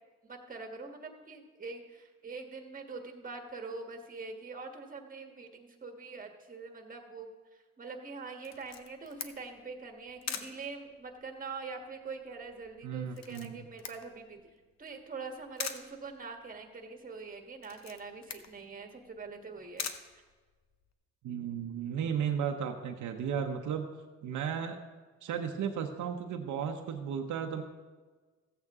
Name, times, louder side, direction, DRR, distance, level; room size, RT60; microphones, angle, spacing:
voice 1, 0.2-14.4 14.8-19.9, right 4 dB, 30° right, 4 dB, 1.5 m, -44 dB
Camera, 8.4-20.9, left 8 dB, 60° left, 0.8 m, -45 dB
voice 2, 12.8-13.7 21.2-23.9 24.2-24.8 25.2-27.6, right 7 dB, 75° right, 4 dB, 0.9 m, -34 dB
14.5 x 8.0 x 3.6 m, 1.4 s
cardioid pair, 90°, 30 cm